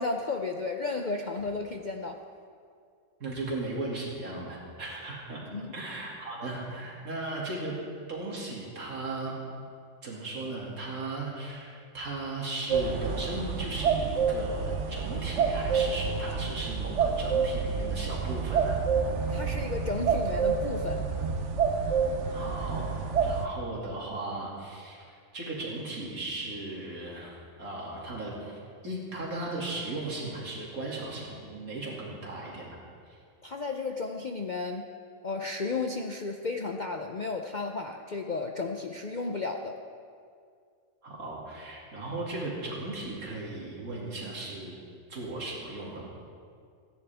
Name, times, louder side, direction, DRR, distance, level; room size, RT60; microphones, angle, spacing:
voice 1, 0.0-2.2 5.5-5.7 19.3-21.1 33.4-34.9 35.2-39.8, left 3 dB, 45° left, 3 dB, 0.6 m, -33 dB
voice 2, 3.2-5.4 5.7-7.7 8.1-9.3 10.0-18.8 22.3-22.9 23.1-25.1 25.3-32.8 33.1-33.2 41.0-44.8 45.1-46.1, right 2 dB, 75° right, -4 dB, 3.0 m, -37 dB
sound 1, 12.7-23.4, right 5 dB, 60° right, 1.1 m, -28 dB
29.0 x 10.5 x 3.5 m, 2.2 s
omnidirectional pair, 1.5 m